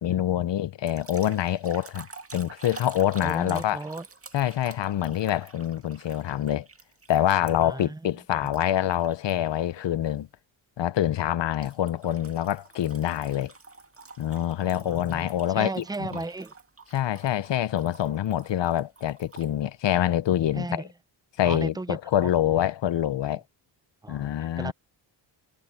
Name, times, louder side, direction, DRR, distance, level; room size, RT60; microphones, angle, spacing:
voice 1, 0.0-2.1 2.3-3.8 4.3-6.7 7.1-10.3 10.8-13.5 14.2-15.8 16.1-16.2 16.9-20.8 21.4-23.4 24.1-24.7, left 11 dB, 65° left, 0.8 m, -26 dB
sound 1, 0.9-7.8 8.5-9.3 9.8-10.1 11.6-19.5, right 4 dB, 30° right, 2.0 m, -48 dB
voice 2, 3.2-4.1 7.6-8.0 14.6-16.5 20.5-20.9 21.4-22.3 24.0-24.7, right 2 dB, 10° right, 0.6 m, -35 dB
cardioid pair, 95°, 47 cm